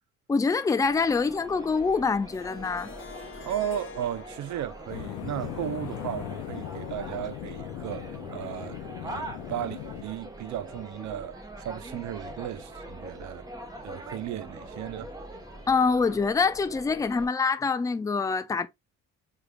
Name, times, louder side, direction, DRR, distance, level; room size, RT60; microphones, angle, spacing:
voice 1, 0.3-2.9 15.7-18.7, left 4 dB, 10° left, 0.3 m, -25 dB
sound 1, 0.8-17.3, right 1 dB, 10° right, 0.9 m, -43 dB
Harp, 2.3-7.3, left 4 dB, 45° left, 1.0 m, -47 dB
voice 2, 3.5-13.4 13.8-15.1, right 11 dB, 70° right, 0.6 m, -35 dB
sound 2, 4.9-10.0, left 13 dB, 80° left, 0.5 m, -38 dB
3.4 x 3.3 x 2.2 m
cardioid pair, 90°, 30 cm